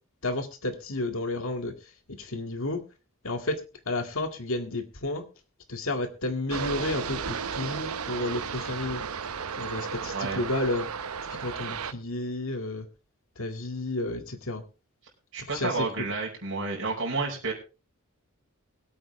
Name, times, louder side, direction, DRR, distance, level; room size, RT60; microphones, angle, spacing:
voice 1, 0.2-1.7 2.2-2.8 3.2-3.6 3.9-5.2 5.7-9.0 9.6-10.9 11.3-12.9 13.4-14.6 15.4-16.1, left 2 dB, 70° left, 7 dB, 2.0 m, -31 dB
sound 1, 6.5-11.9, right 6 dB, 90° right, 0.8 m, -34 dB
voice 2, 10.0-10.4 15.3-17.5, right 3 dB, 60° right, -1 dB, 4.8 m, -31 dB
22.0 x 8.7 x 3.2 m, 0.32 s
head